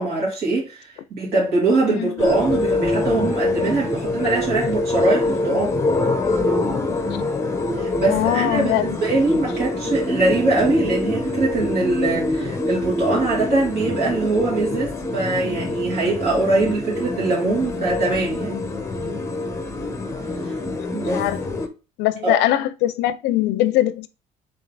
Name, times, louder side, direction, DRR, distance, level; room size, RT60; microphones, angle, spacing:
voice 1, 0.0-5.8 7.8-18.6 20.9-21.2 22.2-22.4, right 2 dB, 70° right, 2.3 m, -22 dB
voice 2, 1.9-2.3 8.1-9.0 21.1-21.7 22.0-24.1, left 14 dB, 85° left, 0.4 m, -22 dB
sound 1, 2.2-21.7, left 2 dB, 15° left, 0.7 m, -25 dB
3.6 x 3.2 x 3.9 m
cardioid pair, 110°, 17 cm